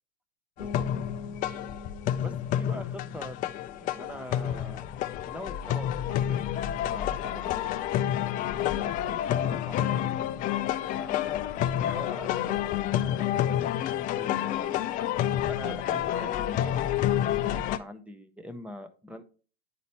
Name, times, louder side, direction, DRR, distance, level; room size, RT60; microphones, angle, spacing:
sound 1, 0.6-6.2, left 4 dB, 90° left, 0.7 m, -45 dB
sound 2, 0.6-17.8, left 11 dB, 25° left, 0.4 m, -29 dB
voice 1, 2.2-3.5 3.8-4.9 5.3-7.7 8.3-10.1 10.9-15.0 15.5-16.9 17.3-19.2, equal, 5° right, 9 dB, 0.7 m, -43 dB
10.0 x 4.0 x 2.9 m, 0.37 s
hypercardioid pair, 100°, 33 cm